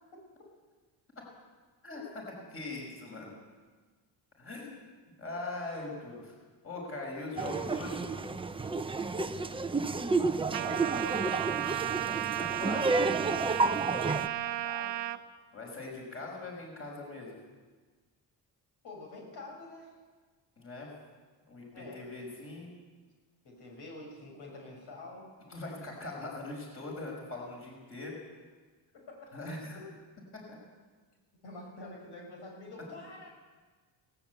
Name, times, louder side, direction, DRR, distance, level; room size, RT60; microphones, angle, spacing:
voice 1, 1.8-2.2 2.5-3.3 4.4-4.9 5.2-6.3 6.6-8.2 12.4-13.2 15.5-17.3 20.6-20.9 21.5-22.7 25.5-28.2 29.3-29.9, left 2 dB, 30° left, -1 dB, 5.7 m, -41 dB
Laughter, 7.4-14.3, right 3 dB, 15° right, 0.7 m, -31 dB
voice 2, 10.0-11.6 13.7-15.0 18.8-20.0 21.7-22.0 23.4-25.3 28.9-29.5 31.4-33.3, left 2 dB, 70° left, 0 dB, 6.7 m, -47 dB
Trumpet, 10.5-15.2, right 14 dB, 85° right, 1.0 m, -34 dB
18.5 x 18.0 x 8.2 m, 1.4 s
cardioid pair, 130°, 42 cm